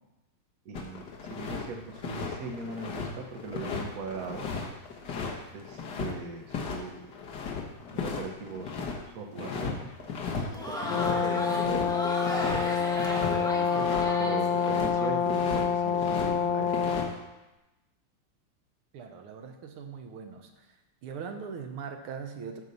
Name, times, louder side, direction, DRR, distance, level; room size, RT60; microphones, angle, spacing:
voice 1, 0.6-4.5 5.5-7.1 7.9-9.9 10.6-11.8 13.3-16.9, right 4 dB, 55° right, 4 dB, 1.3 m, -40 dB
sound 1, 0.7-1.6 1.9-6.1 6.5-6.8 7.0-9.0 9.4-9.7 10.0-10.5 10.7-14.1 14.4-14.9 15.3-16.3 16.6-17.1, left 5 dB, 55° left, 1.7 m, -35 dB
Crowd, 10.3-15.1, equal, 5° left, 0.9 m, -35 dB
Brass instrument, 10.9-17.1, left 6 dB, 75° left, 1.2 m, -27 dB
voice 2, 18.9-20.5 21.0-22.6, right 6 dB, 80° right, 5 dB, 1.8 m, -40 dB
13.0 x 4.7 x 5.4 m, 1.0 s
omnidirectional pair, 2.4 m